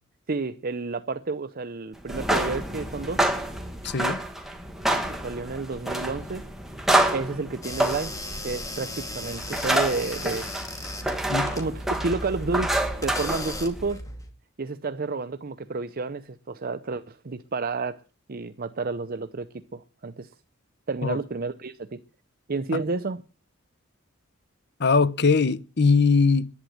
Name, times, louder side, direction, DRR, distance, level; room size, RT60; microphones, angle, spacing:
voice 1, 0.3-3.3 4.9-6.5 7.1-8.1 8.4-10.5 11.5-12.7 13.0-14.0 14.6-18.0 18.3-20.3 20.9-22.0 22.5-23.2, right 3 dB, 45° right, 0.7 m, -30 dB
sound 1, 2.0-13.9, right 1 dB, ahead, 2.0 m, -28 dB
voice 2, 3.8-4.2 11.3-11.5 21.0-21.2 22.7-22.8 24.8-26.5, left 4 dB, 55° left, 0.9 m, -21 dB
sound 2, 7.6-14.3, left 1 dB, 15° left, 2.4 m, -36 dB
11.0 x 9.1 x 9.9 m
head